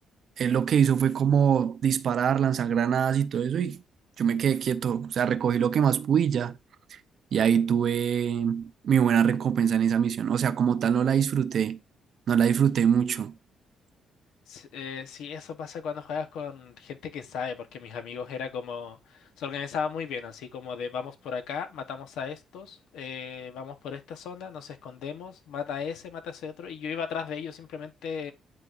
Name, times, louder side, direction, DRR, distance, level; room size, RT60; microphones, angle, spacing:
voice 1, 0.4-3.8 4.2-6.6 7.3-11.8 12.3-13.3, right 8 dB, 60° right, 0.5 m, -24 dB
voice 2, 14.5-28.3, left 6 dB, 85° left, 0.9 m, -36 dB
11.0 x 4.0 x 2.5 m
cardioid pair, 90°, 0 cm